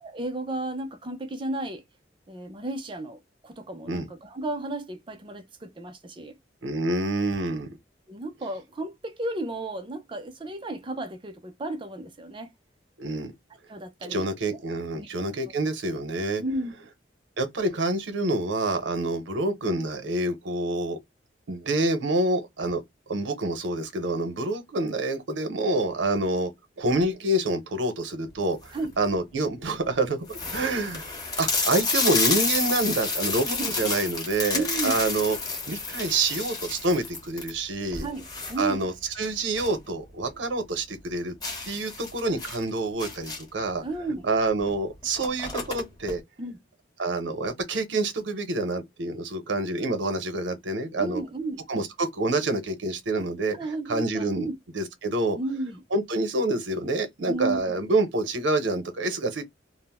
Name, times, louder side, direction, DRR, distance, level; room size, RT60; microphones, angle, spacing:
voice 1, 0.0-1.8 2.3-6.3 8.1-12.5 13.7-14.2 14.9-15.1 16.4-16.7 28.7-28.9 33.5-33.7 34.5-35.0 38.0-38.2 38.5-38.9 43.8-44.3 46.4-46.6 51.0-51.7 53.5-54.6 55.3-55.8 57.3-57.8, right 2 dB, 25° right, 0.5 m, -33 dB
voice 2, 6.6-7.7 13.0-13.3 14.0-16.4 17.4-21.0 21.5-22.8 23.1-26.5 26.8-31.1 31.4-35.4 35.7-38.1 38.6-41.3 41.7-43.8 44.2-46.2 47.0-51.2 51.7-53.6 53.9-54.5 54.7-55.4 55.9-59.4, right 2 dB, 80° right, 0.7 m, -27 dB
sound 1, 28.4-28.9 29.6-29.7 29.9-30.0 30.3-39.8 40.2-40.3 40.7-40.8 41.4-43.6 44.6-44.7 45.0-46.1, left 4 dB, 20° left, 0.8 m, -30 dB
2.4 x 2.0 x 3.4 m
head